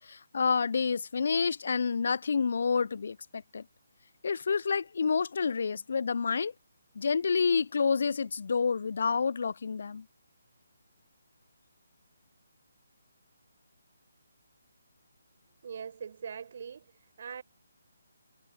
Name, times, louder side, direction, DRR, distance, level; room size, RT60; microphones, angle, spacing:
voice 1, 0.1-3.6 4.2-6.5 7.0-10.0, left 5 dB, 55° left, 0.5 m, -28 dB
voice 2, 15.6-17.4, right 7 dB, 45° right, 5.2 m, -42 dB
figure-of-eight pair, 145°, 0 cm